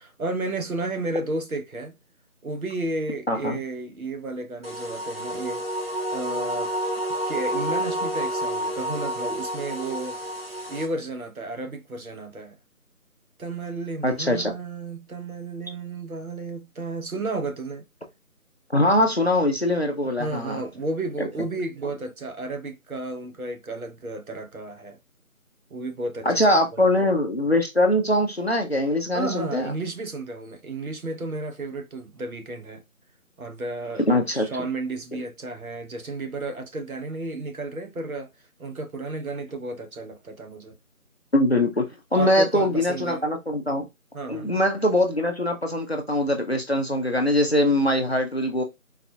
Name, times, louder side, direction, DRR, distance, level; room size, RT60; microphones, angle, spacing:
voice 1, 0.0-1.9 2.4-5.6 6.1-6.7 7.3-10.2 10.7-12.5 13.4-17.8 20.2-25.0 25.7-26.8 29.1-32.8 33.4-38.3 38.6-40.7 42.2-43.2 44.1-44.5, right 2 dB, 75° right, 0.9 m, -32 dB
voice 2, 3.3-3.6 14.0-14.5 18.7-20.6 21.2-21.3 26.2-29.7 34.1-34.5 35.1-35.2 41.3-43.9 44.3-48.6, left 1 dB, 45° left, 0.5 m, -22 dB
sound 1, 4.6-10.9, equal, 45° right, 0.6 m, -29 dB
4.0 x 2.2 x 2.7 m
figure-of-eight pair, 175°, 43 cm